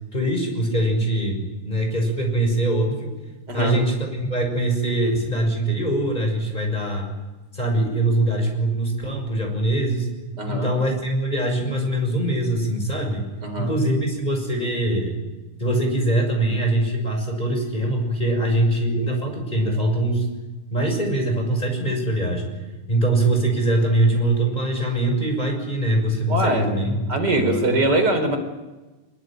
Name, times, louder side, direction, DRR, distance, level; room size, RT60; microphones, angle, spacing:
voice 1, 0.1-3.1 3.5-7.1 7.5-10.1 10.5-13.3 13.6-15.1 15.6-20.3 20.7-22.5 22.9-27.8, right 1 dB, 15° left, 3 dB, 6.5 m, -23 dB
voice 2, 3.5-3.8 10.4-10.7 13.4-13.7 26.3-26.8 27.1-28.4, right 1 dB, 30° right, 5 dB, 4.5 m, -22 dB
23.0 x 22.5 x 9.1 m, 1.2 s
omnidirectional pair, 3.5 m